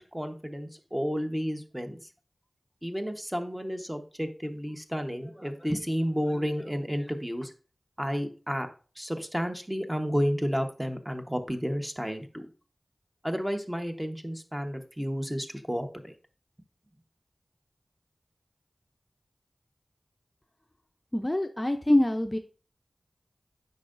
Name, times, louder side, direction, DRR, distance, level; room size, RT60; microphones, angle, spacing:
voice 1, 0.0-2.0 2.8-7.5 8.0-8.7 9.0-12.5 13.2-16.1, equal, 10° right, 5 dB, 1.0 m, -31 dB
voice 2, 21.1-22.4, left 1 dB, 20° left, 6 dB, 0.5 m, -25 dB
8.2 x 5.5 x 2.5 m, 0.37 s
wide cardioid pair, 50°, 0 cm